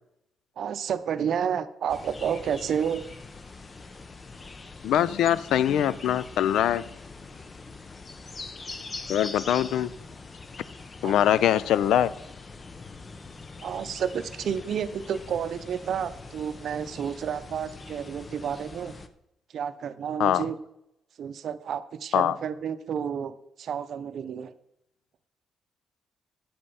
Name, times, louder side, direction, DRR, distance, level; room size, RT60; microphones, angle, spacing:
voice 1, 0.6-3.1 11.0-11.1 13.6-18.9 19.5-20.6 21.2-24.5, right 8 dB, 65° right, 13 dB, 0.6 m, -30 dB
sound 1, 1.9-19.1, left 3 dB, 35° left, 0.7 m, -43 dB
voice 2, 4.8-6.8 9.1-9.9 11.0-12.1 20.2-20.4 22.1-22.4, left 10 dB, 80° left, 18 dB, 0.4 m, -23 dB
8.6 x 5.4 x 5.5 m, 0.82 s
cardioid pair, 90°, 0 cm